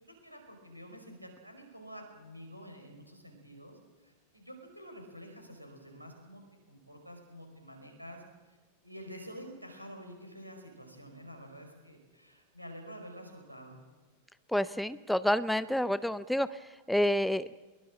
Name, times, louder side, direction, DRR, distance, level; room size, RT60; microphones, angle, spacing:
voice 1, 0.0-8.2 8.8-13.8, equal, 90° right, 3 dB, 5.2 m, -49 dB
voice 2, 14.5-16.5 16.9-17.5, left 1 dB, ahead, 16 dB, 0.6 m, -28 dB
22.5 x 21.5 x 7.5 m, 1.3 s
figure-of-eight pair, 90°, 0 cm